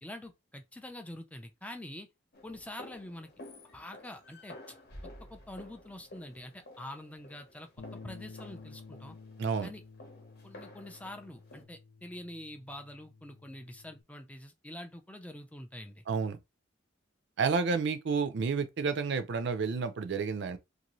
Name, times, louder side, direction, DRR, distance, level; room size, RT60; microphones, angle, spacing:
voice 1, 0.0-2.1 2.4-3.3 3.7-4.8 5.0-9.2 9.6-9.8 10.4-16.0, left 1 dB, 5° left, 0.3 m, -46 dB
sound 1, 2.3-11.6, left 1 dB, 50° left, 0.9 m, -52 dB
Bass guitar, 7.8-14.0, left 4 dB, 90° left, 0.5 m, -52 dB
voice 2, 9.4-9.7 16.1-16.4 17.4-20.6, right 5 dB, 60° right, 0.4 m, -30 dB
2.6 x 2.6 x 3.0 m
head